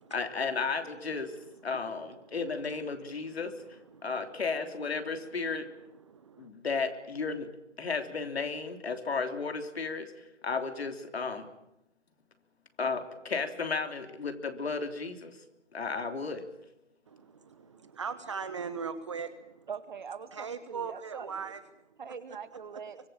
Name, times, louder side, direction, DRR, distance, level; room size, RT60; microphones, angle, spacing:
voice 1, 0.1-1.3 1.6-3.5 4.0-5.7 6.4-7.5 7.8-10.1 10.4-11.5 12.8-15.4 15.7-16.5, left 4 dB, 60° left, 7 dB, 3.3 m, -33 dB
voice 2, 2.9-3.4 3.9-4.4 6.0-6.5 17.1-19.7 20.3-21.6, right 6 dB, 25° right, 12 dB, 1.0 m, -40 dB
voice 3, 19.7-21.5 22.0-23.0, right 6 dB, 40° right, 12 dB, 1.8 m, -42 dB
24.0 x 21.5 x 9.0 m, 0.88 s
hypercardioid pair, 165°, 35 cm